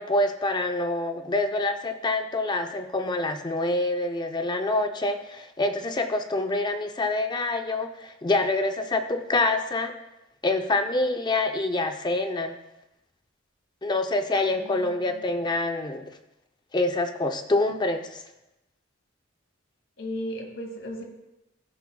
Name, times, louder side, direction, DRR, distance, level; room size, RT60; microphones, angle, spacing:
voice 1, 0.0-9.9 10.4-12.6 13.8-16.1 16.7-18.2, left 2 dB, 20° left, 6 dB, 0.5 m, -26 dB
voice 2, 14.5-15.2 20.0-21.0, equal, 65° left, 1 dB, 1.8 m, -36 dB
14.0 x 6.0 x 2.3 m, 0.91 s
head